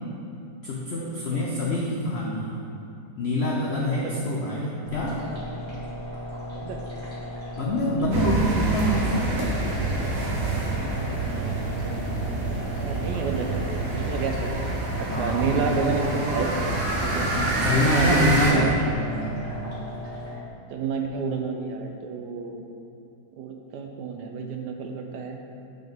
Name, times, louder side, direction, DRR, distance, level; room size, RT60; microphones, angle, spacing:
voice 1, 0.6-2.5 3.2-5.2 7.6-9.4 15.1-15.4 17.4-18.8 19.1-19.3, left 1 dB, 75° left, -3 dB, 0.6 m, -25 dB
voice 2, 1.1-1.5 3.9-4.4 6.5-6.8 10.8-11.9 12.3-14.7 15.0-16.6 17.0-17.3 17.7-18.7 20.7-22.6 23.4-25.4, right 4 dB, 75° right, 3 dB, 1.2 m, -30 dB
sound 1, 4.8-20.3, left 1 dB, 15° right, 1.5 m, -37 dB
sound 2, 8.1-18.5, right 2 dB, 55° right, 1.2 m, -27 dB
8.8 x 3.8 x 3.5 m, 2.6 s
omnidirectional pair, 1.9 m